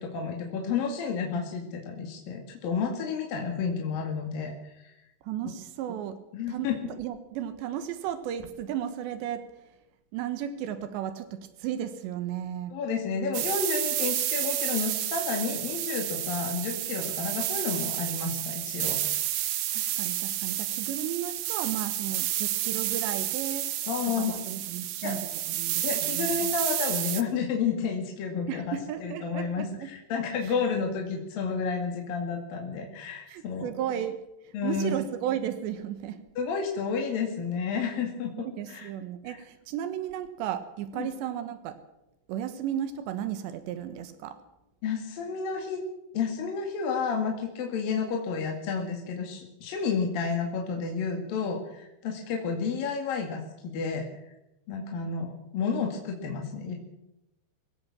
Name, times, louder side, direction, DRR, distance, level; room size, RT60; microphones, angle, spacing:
voice 1, 0.0-4.9 6.3-6.8 12.7-19.0 23.9-24.4 25.0-25.2 25.8-33.7 34.5-34.9 36.4-38.9 39.3-39.4 41.0-41.1 44.8-45.8 46.1-54.1 54.7-56.8, left 5 dB, 60° left, 1 dB, 3.7 m, -31 dB
voice 2, 5.2-6.2 6.5-9.5 10.1-12.8 19.7-23.7 24.1-26.5 28.5-29.9 30.4-30.6 33.3-34.2 34.5-36.2 38.3-41.8 42.3-44.4, right 10 dB, 90° right, 9 dB, 3.6 m, -34 dB
sound 1, 13.3-27.2, right 13 dB, 70° right, 2.0 m, -30 dB
22.5 x 16.5 x 7.4 m, 0.90 s
omnidirectional pair, 4.9 m